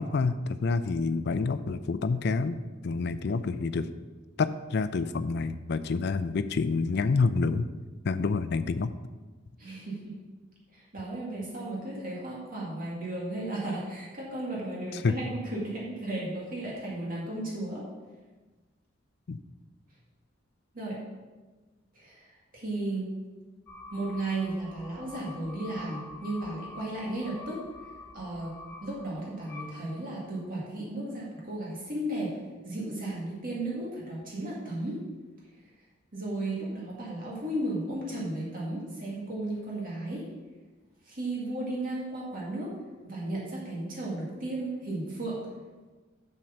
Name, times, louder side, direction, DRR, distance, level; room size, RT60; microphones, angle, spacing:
voice 1, 0.0-2.6 2.8-3.9 4.4-7.7 8.0-8.9 15.0-15.1 19.3-19.4, left 4 dB, 60° left, 11 dB, 0.4 m, -28 dB
voice 2, 9.6-10.2 10.7-17.8 20.7-21.0 21.9-22.2 22.5-23.1 23.9-27.6 28.1-28.5 28.8-32.4 32.6-35.0 36.1-40.3 41.0-42.7 43.0-45.4, right 2 dB, 50° right, -5 dB, 2.1 m, -34 dB
sound 1, 23.7-30.4, left 3 dB, 10° left, 2.2 m, -47 dB
7.4 x 6.6 x 5.8 m, 1.3 s
head